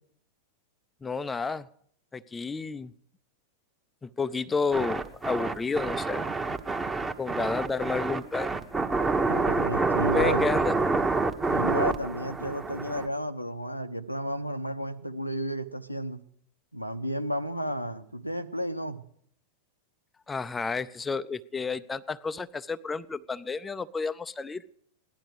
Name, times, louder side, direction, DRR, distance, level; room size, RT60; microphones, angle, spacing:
voice 1, 1.0-1.7 2.1-2.9 4.0-6.3 7.2-8.5 10.1-10.7 20.3-24.6, left 4 dB, 15° left, 12 dB, 0.5 m, -31 dB
sound 1, 4.7-13.1, right 3 dB, 15° right, 1.2 m, -27 dB
voice 2, 9.3-10.4 11.5-16.2 16.7-19.0, equal, 90° left, 7 dB, 0.9 m, -32 dB
17.0 x 11.5 x 6.6 m, 0.65 s
figure-of-eight pair, 90°, 0 cm